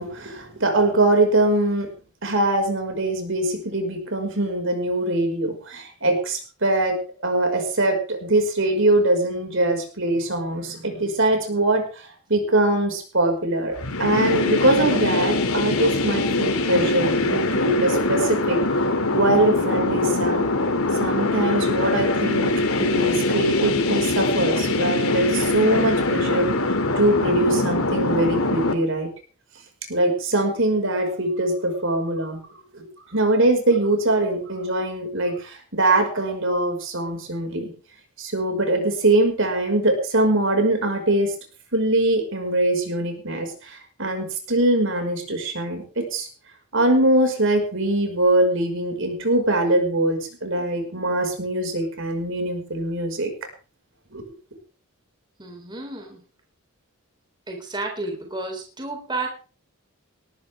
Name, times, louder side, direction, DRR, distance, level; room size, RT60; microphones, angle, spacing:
voice 1, 0.0-1.9 2.2-18.6 19.1-20.5 20.9-29.1 29.9-37.7 38.2-41.3 41.7-46.3 46.7-53.3 54.1-54.2, right 1 dB, 60° right, 5 dB, 5.4 m, -22 dB
sound 1, 13.8-28.7, left 2 dB, 70° left, 2.7 m, -23 dB
voice 2, 55.4-56.2 57.5-59.3, right 2 dB, 20° right, 2 dB, 3.8 m, -31 dB
20.0 x 13.5 x 3.6 m, 0.37 s
head